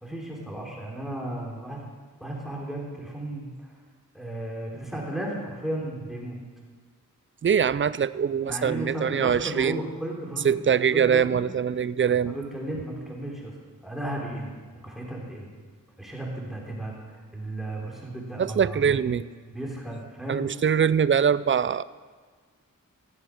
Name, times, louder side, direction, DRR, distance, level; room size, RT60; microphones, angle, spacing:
voice 1, 0.0-1.8 2.2-3.7 4.1-6.4 8.5-11.4 12.2-13.5 13.8-14.5 14.8-15.5 16.0-19.2 19.5-20.4, right 1 dB, ahead, -2 dB, 3.3 m, -34 dB
voice 2, 7.4-9.8 10.4-12.4 18.4-19.2 20.3-21.8, right 7 dB, 35° right, 17 dB, 0.4 m, -23 dB
15.0 x 7.6 x 6.4 m, 1.5 s
cardioid pair, 60°, 34 cm